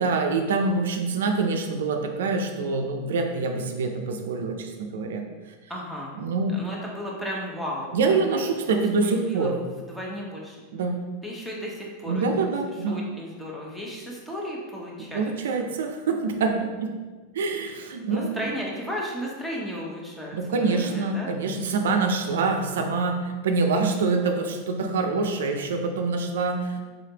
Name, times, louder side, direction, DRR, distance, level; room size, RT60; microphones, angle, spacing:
voice 1, 0.0-5.2 6.2-6.6 7.9-9.6 10.7-11.0 12.1-13.0 15.1-16.9 17.3-18.5 20.3-26.8, right 4 dB, 80° right, 4 dB, 0.4 m, -25 dB
voice 2, 5.7-6.1 6.5-8.2 8.5-9.5 9.9-10.6 11.2-12.5 12.9-15.2 15.6-15.7 18.1-21.4, equal, 5° left, -3 dB, 1.0 m, -34 dB
4.0 x 3.2 x 2.8 m, 1.3 s
hypercardioid pair, 105°, 0 cm